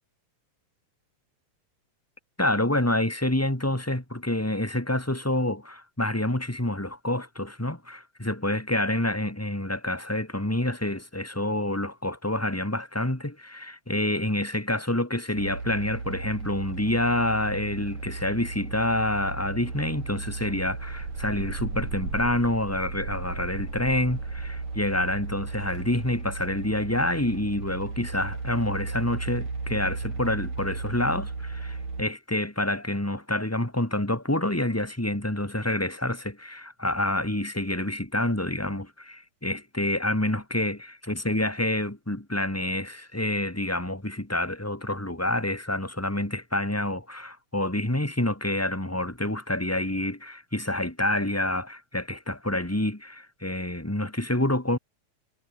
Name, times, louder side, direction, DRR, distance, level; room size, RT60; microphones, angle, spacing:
voice 1, 2.4-54.8, left 1 dB, 5° left, 3.1 m, -28 dB
sound 1, 15.4-32.0, right 3 dB, 65° right, 8.1 m, -35 dB
omnidirectional pair, 3.6 m